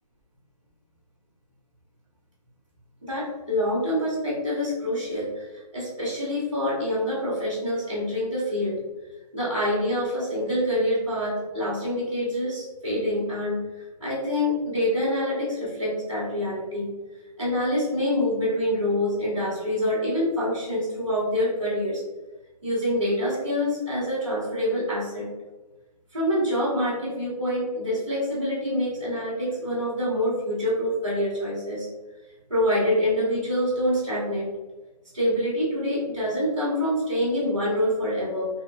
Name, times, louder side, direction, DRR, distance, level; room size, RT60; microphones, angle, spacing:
voice 1, 3.1-8.8 9.3-16.9 17.4-22.0 22.6-25.3 26.1-31.9 32.5-34.5 35.1-38.5, left 1 dB, ahead, -25 dB, 0.4 m, -26 dB
3.1 x 2.7 x 3.3 m, 1.2 s
hypercardioid pair, 175°, 21 cm